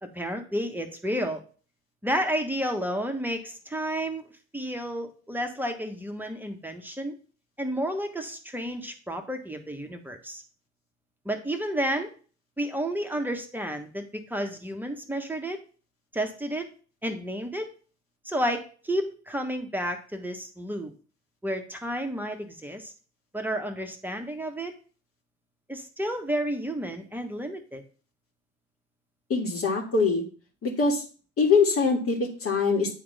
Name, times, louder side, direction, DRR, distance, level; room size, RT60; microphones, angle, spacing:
voice 1, 0.0-1.4 2.0-7.1 7.6-10.4 11.2-12.1 12.6-15.6 16.1-16.7 17.0-17.7 18.2-20.9 21.4-22.9 23.3-24.7 25.7-27.8, equal, 5° right, 5 dB, 1.2 m, -31 dB
voice 2, 29.3-30.2 30.6-31.0 31.4-32.9, left 4 dB, 40° left, 0 dB, 2.1 m, -23 dB
9.5 x 3.5 x 3.4 m, 0.40 s
figure-of-eight pair, 55°, 35 cm